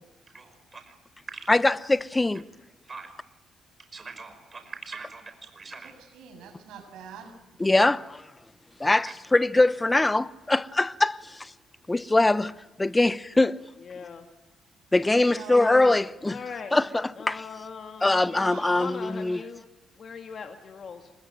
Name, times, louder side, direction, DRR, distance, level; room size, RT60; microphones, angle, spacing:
voice 1, 0.3-1.0 1.3-1.6 2.9-3.1 3.9-5.9 9.1-9.2, right 4 dB, 35° right, 5.6 m, -42 dB
voice 2, 1.5-2.4 7.6-8.2 8.8-11.2 11.9-12.5 12.8-13.6 14.9-16.4 16.7-17.4 18.0-19.4, left 2 dB, 15° left, 0.8 m, -22 dB
voice 3, 5.8-7.3 15.2-15.8 18.4-18.9, right 6 dB, 85° right, 7.1 m, -44 dB
voice 4, 13.8-14.3 16.3-16.7 17.2-19.6 20.0-21.1, left 6 dB, 50° left, 2.2 m, -40 dB
26.5 x 22.0 x 9.2 m
cardioid pair, 90°, 0 cm